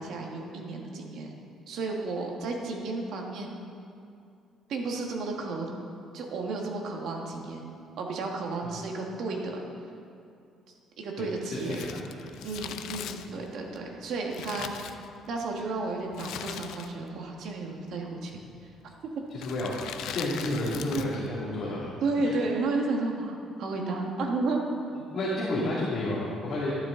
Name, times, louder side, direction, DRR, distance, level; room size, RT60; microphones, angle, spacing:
voice 1, 0.0-1.3 1.7-3.6 4.7-5.7 6.1-7.6 8.0-9.6 11.0-11.8 12.4-15.0 15.3-18.7 20.9-21.0 22.0-24.6, right 3 dB, 60° right, 0 dB, 1.6 m, -32 dB
voice 2, 11.2-12.2 13.3-13.4 19.3-21.9 22.2-22.3 25.1-26.7, left 1 dB, 45° left, -7 dB, 2.3 m, -31 dB
Crumpling crinkling, 11.5-15.5 16.1-17.2 17.4-17.5 18.3-18.7 19.3-21.3 21.5-21.6, left 9 dB, 70° left, 0.5 m, -40 dB
12.0 x 12.0 x 3.8 m, 2.5 s
cardioid pair, 160°, 0 cm